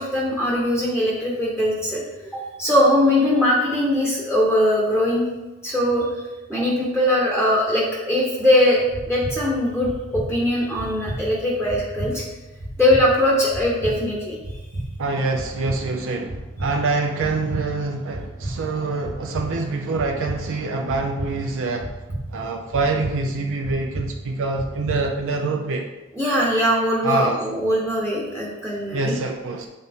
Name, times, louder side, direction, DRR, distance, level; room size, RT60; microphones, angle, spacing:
voice 1, 0.0-2.0 2.3-5.2 5.6-6.1 6.5-8.8 9.1-12.2 12.8-14.4 26.1-29.1, left 1 dB, 5° right, -4 dB, 1.0 m, -21 dB
sound 1, 8.8-25.4, right 1 dB, 80° right, 1.6 m, -34 dB
voice 2, 15.0-21.9 22.3-25.9 27.0-27.4 28.9-29.7, right 3 dB, 60° right, 2 dB, 0.6 m, -25 dB
8.1 x 4.0 x 3.6 m, 1.1 s
head